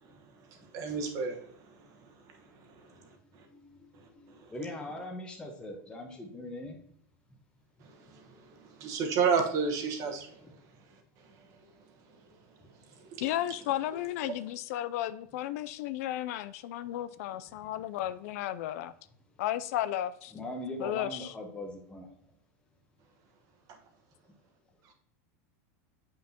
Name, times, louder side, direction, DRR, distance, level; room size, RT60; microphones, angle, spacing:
voice 1, 0.7-1.4 8.1-8.2 8.8-10.3, right 5 dB, 40° right, 3 dB, 1.2 m, -29 dB
voice 2, 3.5-6.8 10.4-10.5 20.3-22.1, left 1 dB, 10° left, 1 dB, 0.9 m, -41 dB
voice 3, 13.2-18.9 19.4-20.3 20.8-21.3, left 13 dB, 65° left, 14 dB, 0.4 m, -34 dB
7.4 x 5.8 x 2.8 m, 0.69 s
supercardioid pair, 150°, 9 cm